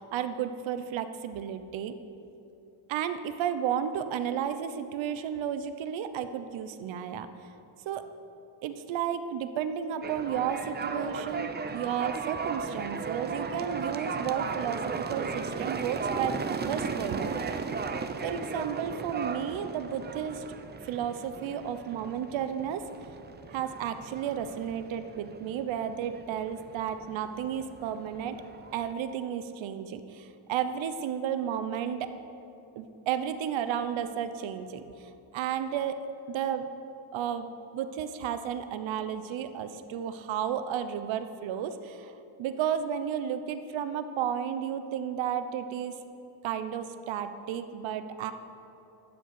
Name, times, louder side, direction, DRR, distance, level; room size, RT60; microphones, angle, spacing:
voice 1, 0.0-2.0 2.9-7.3 7.9-8.1 8.6-17.6 18.2-20.5 20.8-22.9 23.5-28.4 28.7-32.2 32.8-36.7 37.1-37.5 37.7-42.1 42.4-46.0 46.4-48.3, right 9 dB, 65° right, 10 dB, 1.0 m, -33 dB
sound 1, 10.0-28.9, right 5 dB, 20° right, 0.5 m, -36 dB
12.5 x 6.6 x 9.5 m, 2.9 s
cardioid pair, 130°, 49 cm